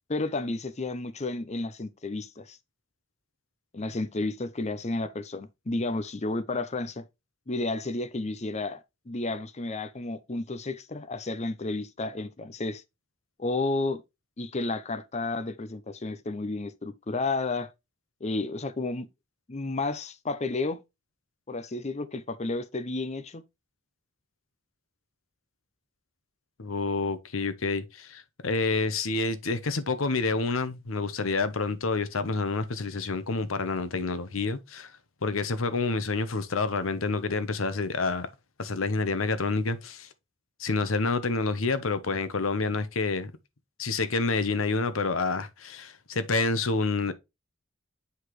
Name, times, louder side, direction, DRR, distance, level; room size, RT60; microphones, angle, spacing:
voice 1, 0.1-2.6 3.7-7.0 7.5-12.8 13.4-14.0 14.4-17.7 18.2-19.1 19.5-20.8 21.5-23.4, left 2 dB, 35° left, 0.7 m, -32 dB
voice 2, 26.6-34.9 35.2-38.3 38.6-40.1 40.6-43.3 43.8-47.1, left 3 dB, 85° left, 1.0 m, -28 dB
8.1 x 4.9 x 3.1 m
head